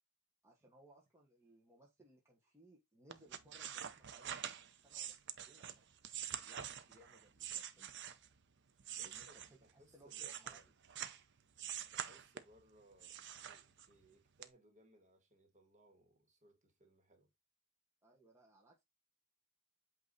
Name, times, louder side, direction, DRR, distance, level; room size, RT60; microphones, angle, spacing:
voice 1, 0.4-6.0 6.4-7.9 8.9-10.6 18.0-18.8, right 1 dB, 15° right, 1.2 m, -65 dB
sound 1, 3.1-8.4 8.8-11.2 11.6-12.6 13.0-14.1 14.4-14.5, right 9 dB, 55° right, 0.7 m, -46 dB
voice 2, 9.0-10.7 11.9-17.3, right 1 dB, 35° right, 1.7 m, -66 dB
8.2 x 2.9 x 4.0 m
head